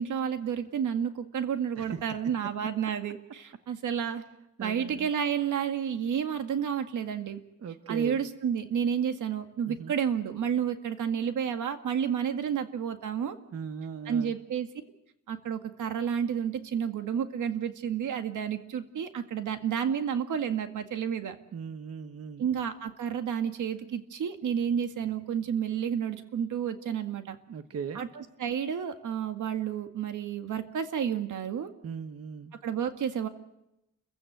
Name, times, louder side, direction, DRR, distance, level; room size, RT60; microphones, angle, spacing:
voice 1, 0.0-4.2 4.6-7.4 7.9-13.4 14.1-14.7 15.3-21.4 22.4-27.4 27.9-31.7 32.6-33.3, right 8 dB, 80° right, 7 dB, 2.0 m, -30 dB
voice 2, 4.6-5.1 7.6-8.2 9.7-9.9 13.5-14.3 21.5-22.5 27.5-28.0 31.8-32.5, right 6 dB, 50° right, 8 dB, 1.2 m, -38 dB
29.5 x 15.5 x 8.0 m, 0.88 s
wide cardioid pair, 165°, 30 cm